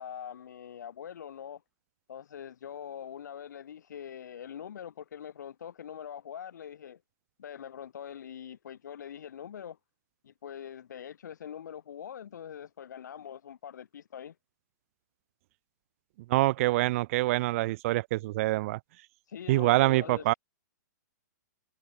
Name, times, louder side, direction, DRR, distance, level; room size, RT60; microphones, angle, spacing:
voice 1, 0.0-1.6 2.1-7.0 7.4-9.8 10.2-14.4 19.3-20.2, left 9 dB, 70° left, 6.8 m, -43 dB
voice 2, 16.3-18.8 19.5-20.3, right 18 dB, 45° right, 0.7 m, -25 dB
hypercardioid pair, 125°, 10 cm